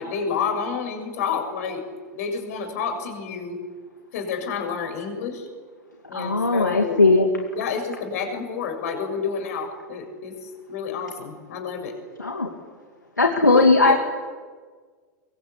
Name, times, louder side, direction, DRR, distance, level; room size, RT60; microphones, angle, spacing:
voice 1, 0.0-1.8 2.1-3.6 4.1-5.5 6.1-7.0 7.6-12.0 13.5-13.9, left 6 dB, 60° left, 5 dB, 6.7 m, -29 dB
voice 2, 6.1-7.3 12.2-12.5 13.2-13.9, left 3 dB, 85° left, 2 dB, 2.2 m, -18 dB
23.5 x 23.5 x 8.3 m, 1.5 s
figure-of-eight pair, 90°, 9 cm